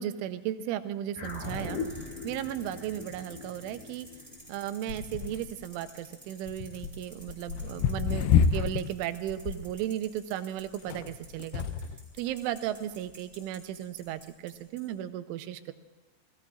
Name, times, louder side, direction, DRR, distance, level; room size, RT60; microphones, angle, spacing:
voice 1, 0.0-4.1 4.5-11.7 12.2-15.7, right 11 dB, 90° right, 10 dB, 3.3 m, -35 dB
sound 1, 1.2-5.8, left 3 dB, 60° left, 4.1 m, -40 dB
sound 2, 1.2-14.5 14.8-14.9, right 1 dB, 5° right, 7.2 m, -51 dB
sound 3, 4.9-5.7 6.5-8.9 9.3-9.7 10.8-12.1 12.9-13.0, left 7 dB, 90° left, 2.3 m, -28 dB
29.5 x 18.5 x 2.4 m, 1.1 s
omnidirectional pair, 5.4 m